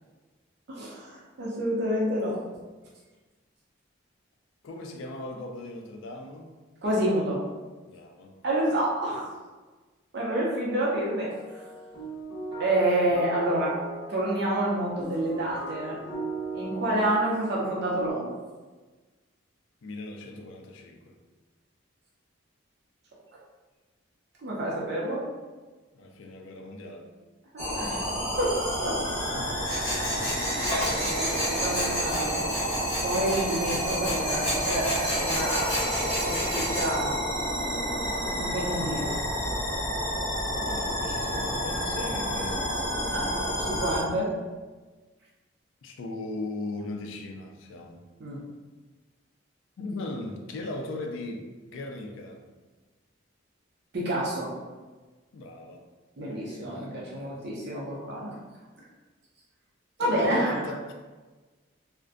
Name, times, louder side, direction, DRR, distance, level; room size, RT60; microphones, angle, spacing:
voice 1, 0.7-2.4 6.8-7.4 8.4-9.3 10.1-11.3 12.6-13.7 14.1-16.0 16.5-18.3 24.4-25.2 27.5-28.0 28.4-29.0 30.1-30.4 30.7-32.5 33.0-37.2 38.4-39.2 43.1-43.3 43.6-44.3 48.2-48.4 53.9-54.5 56.2-58.4 60.0-60.6, right 1 dB, 55° right, -5 dB, 0.5 m, -28 dB
voice 2, 4.6-6.5 7.9-8.4 19.8-21.1 25.9-27.1 29.3-29.6 40.6-42.8 45.8-48.0 49.8-52.4 55.3-55.8 56.2-57.4 60.0-60.9, left 2 dB, 70° left, 2 dB, 0.3 m, -38 dB
sound 1, 10.9-18.1, right 2 dB, 20° right, 0.9 m, -38 dB
sound 2, 27.6-44.0, equal, 15° left, 0.7 m, -30 dB
Tools, 29.6-36.9, equal, 50° left, 1.3 m, -31 dB
2.5 x 2.1 x 2.4 m, 1.3 s
head